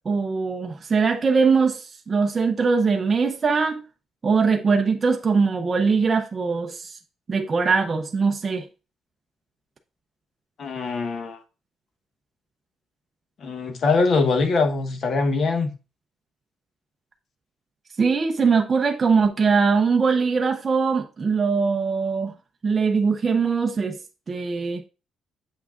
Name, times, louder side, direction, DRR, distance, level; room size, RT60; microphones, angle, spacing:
voice 1, 0.1-3.8 4.2-7.0 7.3-8.7 18.0-22.3 22.6-24.0 24.3-24.8, right 5 dB, 25° right, 0.5 m, -21 dB
voice 2, 10.6-11.4 13.4-15.7, left 4 dB, 45° left, 1.0 m, -22 dB
7.1 x 5.9 x 2.4 m
cardioid pair, 160°, 0 cm